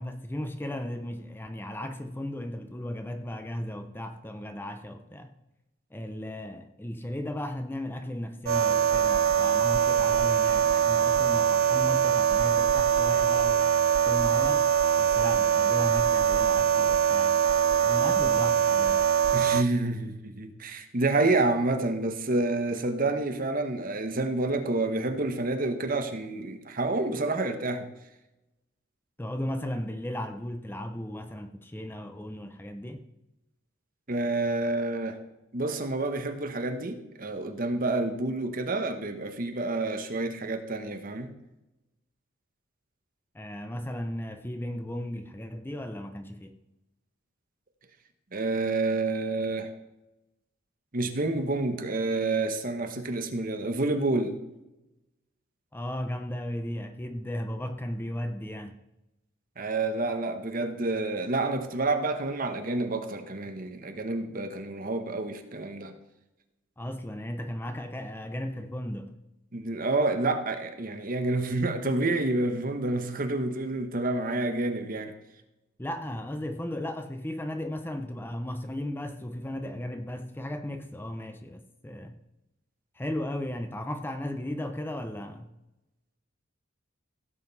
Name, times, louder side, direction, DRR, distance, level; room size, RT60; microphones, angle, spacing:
voice 1, 0.0-5.3 5.9-13.7 14.0-14.7 15.0-17.4 17.8-19.1 29.2-33.0 43.3-46.5 55.7-58.8 66.8-69.2 75.8-82.2 83.0-85.5, left 1 dB, 10° left, 0.6 m, -35 dB
sound 1, 8.4-19.6, right 8 dB, 75° right, 0.3 m, -23 dB
voice 2, 19.3-27.9 34.1-35.2 35.5-41.3 48.3-49.7 50.9-54.4 59.6-65.9 69.5-75.1, right 2 dB, 45° right, 1.1 m, -28 dB
16.0 x 7.5 x 4.1 m
head